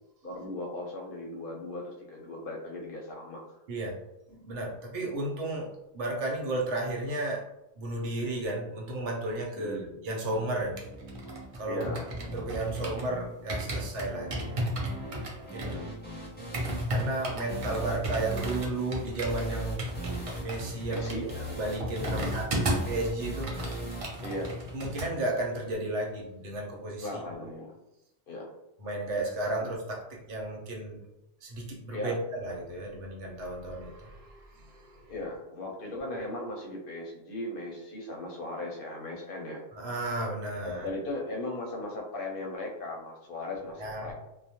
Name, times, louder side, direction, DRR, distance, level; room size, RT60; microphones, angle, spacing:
voice 1, 0.2-3.4 9.5-10.0 11.6-12.7 15.6-15.9 20.9-21.3 22.0-22.3 24.2-24.5 27.0-27.7 28.3-28.5 31.9-32.2 35.1-39.6 40.6-44.1, left 2 dB, 60° left, 0 dB, 0.7 m, -38 dB
voice 2, 4.3-7.5 7.8-9.8 10.0-10.9 11.6-11.9 12.2-14.6 15.5-15.8 16.9-19.8 20.4-21.3 21.6-23.6 24.7-27.2 28.8-31.0 31.4-35.1 39.7-40.9 43.8-44.1, right 2 dB, 90° right, -1 dB, 1.0 m, -33 dB
sound 1, 10.3-25.3, equal, 15° left, 0.4 m, -41 dB
sound 2, 10.8-13.1 13.5-23.0 23.3-25.1 25.4-25.6, right 1 dB, 50° right, 0.4 m, -34 dB
2.3 x 2.1 x 2.7 m, 0.89 s
omnidirectional pair, 1.1 m